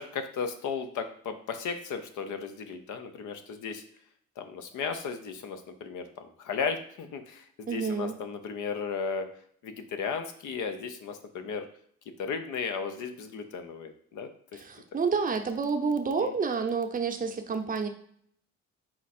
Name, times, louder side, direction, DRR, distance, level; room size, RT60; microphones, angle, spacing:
voice 1, 0.0-3.8 4.4-9.3 9.6-11.7 12.2-14.6 16.2-16.4, left 5 dB, 80° left, 8 dB, 0.6 m, -35 dB
voice 2, 7.7-8.1 14.5-17.9, right 5 dB, 30° right, 5 dB, 0.6 m, -29 dB
4.4 x 2.5 x 4.2 m, 0.64 s
cardioid pair, 90°, 30 cm